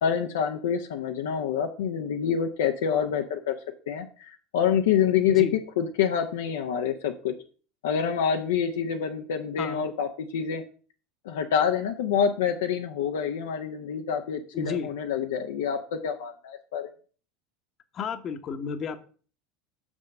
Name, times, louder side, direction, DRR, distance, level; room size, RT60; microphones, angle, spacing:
voice 1, 0.0-3.6 3.9-7.3 7.8-10.6 11.2-16.9, left 8 dB, 65° left, 4 dB, 0.7 m, -27 dB
voice 2, 14.5-14.9 17.9-19.0, left 5 dB, 35° left, 9 dB, 1.0 m, -32 dB
6.3 x 6.1 x 5.6 m, 0.40 s
figure-of-eight pair, 75°, 0 cm